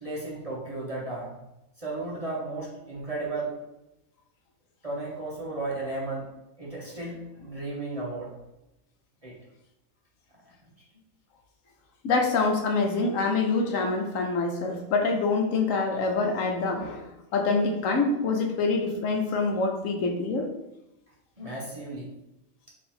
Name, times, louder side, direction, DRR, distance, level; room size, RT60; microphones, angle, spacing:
voice 1, 0.0-1.3 1.8-3.5 4.8-6.3 6.6-8.3 9.2-9.4 21.4-22.1, right 2 dB, 30° right, -5 dB, 0.9 m, -34 dB
voice 2, 12.0-20.5, left 3 dB, 75° left, 3 dB, 1.0 m, -26 dB
3.7 x 3.0 x 4.2 m, 0.92 s
omnidirectional pair, 1.4 m